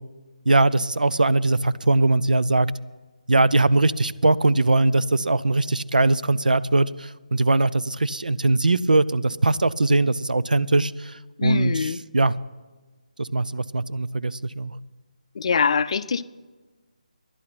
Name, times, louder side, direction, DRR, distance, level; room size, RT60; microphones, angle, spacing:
voice 1, 0.5-2.7 3.3-12.3 13.2-14.7, right 2 dB, 85° right, 0.5 m, -21 dB
voice 2, 11.4-12.0 15.3-16.2, left 6 dB, 45° left, 0.5 m, -23 dB
12.5 x 11.0 x 5.9 m
figure-of-eight pair, 155°, 4 cm